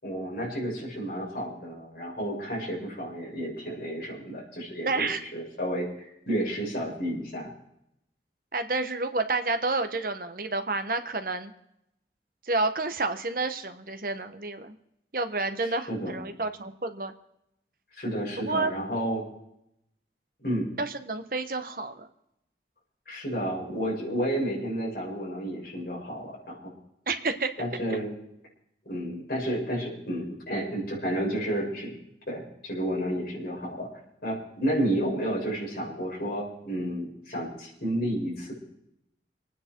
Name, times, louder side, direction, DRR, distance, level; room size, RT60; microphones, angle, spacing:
voice 1, 0.0-5.1 5.3-7.5 15.9-16.4 18.0-19.3 20.4-20.7 23.1-26.7 27.6-28.1 28.8-31.9 32.3-33.9 34.2-38.5, right 1 dB, 55° left, -4 dB, 6.3 m, -31 dB
voice 2, 4.8-5.2 8.5-11.5 12.5-14.8 15.1-17.1 18.5-18.7 20.8-22.1 27.1-27.5, right 3 dB, 55° right, 8 dB, 1.2 m, -29 dB
25.0 x 9.7 x 4.6 m, 0.79 s
head